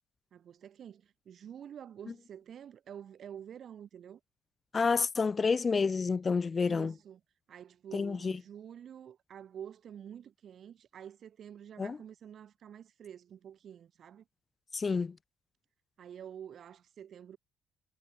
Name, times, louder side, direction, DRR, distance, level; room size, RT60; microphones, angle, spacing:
voice 1, 0.3-4.2 6.6-7.2 7.5-14.2 16.0-17.4, right 9 dB, 50° right, 5.4 m, -48 dB
voice 2, 4.7-6.9 7.9-8.4 11.8-12.0 14.7-15.2, left 5 dB, 35° left, 1.9 m, -29 dB
hypercardioid pair, 50°, 0 cm